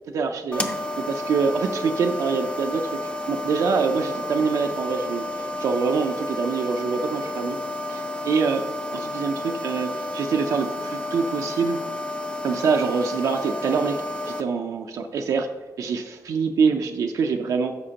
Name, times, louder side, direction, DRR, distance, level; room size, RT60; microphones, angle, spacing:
voice 1, 0.1-0.7 1.0-2.9 3.3-7.6 7.9-8.6 8.9-11.8 12.4-15.5 15.8-17.8, right 5 dB, 70° right, 4 dB, 0.5 m, -25 dB
sound 1, 0.5-14.4, left 1 dB, 20° left, 0.6 m, -31 dB
10.0 x 6.6 x 2.8 m, 1.4 s
wide cardioid pair, 130°, 6 cm